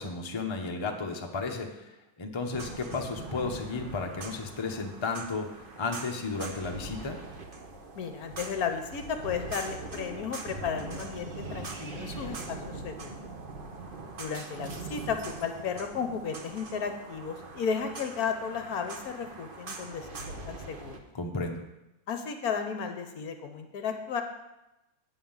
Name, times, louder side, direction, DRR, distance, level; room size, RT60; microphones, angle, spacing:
voice 1, 0.0-1.9 2.2-7.2 21.1-21.6, left 4 dB, 25° left, 2 dB, 0.6 m, -33 dB
sound 1, 2.5-21.0, right 3 dB, 40° right, 0.9 m, -42 dB
voice 2, 7.9-13.1 14.2-20.9 22.1-24.2, left 6 dB, 65° left, 6 dB, 1.2 m, -34 dB
8.3 x 5.7 x 7.2 m, 0.94 s
omnidirectional pair, 1.9 m